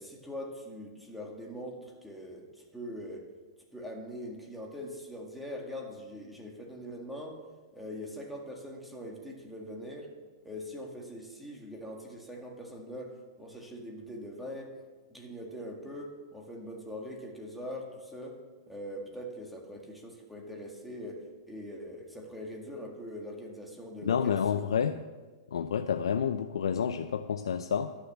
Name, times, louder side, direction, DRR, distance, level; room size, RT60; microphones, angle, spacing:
voice 1, 0.0-3.2 3.7-7.4 7.7-10.1 10.4-14.8 15.1-18.4 18.7-24.6, equal, ahead, -1 dB, 2.0 m, -42 dB
voice 2, 24.0-25.0 25.5-27.9, left 7 dB, 90° left, 9 dB, 0.5 m, -29 dB
11.5 x 6.8 x 7.1 m, 1.4 s
hypercardioid pair, 135°, 3 cm